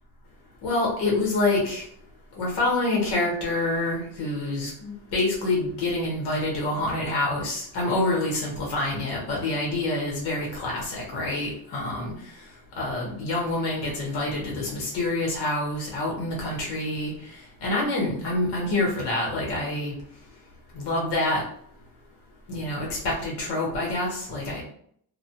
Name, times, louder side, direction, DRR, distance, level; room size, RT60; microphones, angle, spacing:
voice 1, 0.6-1.8 2.3-12.1 12.8-17.1 17.6-19.9 20.7-21.4 22.5-24.6, left 2 dB, 75° left, -3 dB, 1.1 m, -27 dB
2.3 x 2.3 x 2.8 m, 0.64 s
cardioid pair, 140°, 41 cm